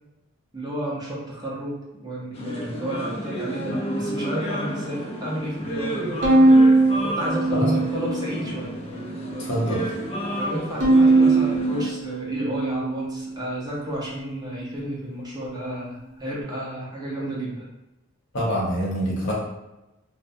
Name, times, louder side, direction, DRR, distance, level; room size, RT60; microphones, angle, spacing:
voice 1, 0.5-6.5 7.0-8.7 10.4-17.6, right 1 dB, 20° right, -5 dB, 0.6 m, -32 dB
sound 1, 2.3-11.9, equal, 30° left, 0.4 m, -31 dB
Bowed string instrument, 6.2-8.6 9.0-9.8 10.8-13.3, right 2 dB, 60° right, 0.7 m, -20 dB
voice 2, 9.4-9.8 18.3-19.3, equal, 60° left, -4 dB, 0.8 m, -25 dB
2.5 x 2.1 x 2.6 m, 0.97 s
head